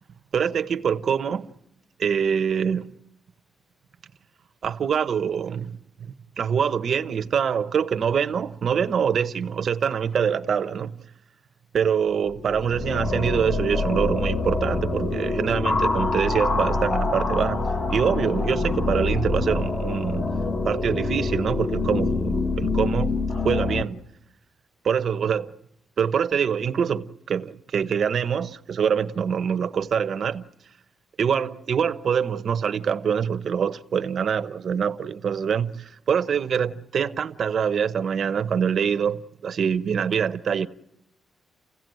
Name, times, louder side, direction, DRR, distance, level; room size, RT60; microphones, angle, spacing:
voice 1, 0.3-1.5 2.0-2.9 4.6-10.9 11.7-17.6 17.9-20.3 20.6-23.2 23.4-24.0 24.8-25.5 26.0-30.5 31.2-40.7, right 7 dB, 55° right, 0.9 m, -25 dB
sound 1, 12.2-23.8, left 3 dB, 40° left, 1.5 m, -25 dB
30.0 x 16.5 x 9.3 m
wide cardioid pair, 145°, 0 cm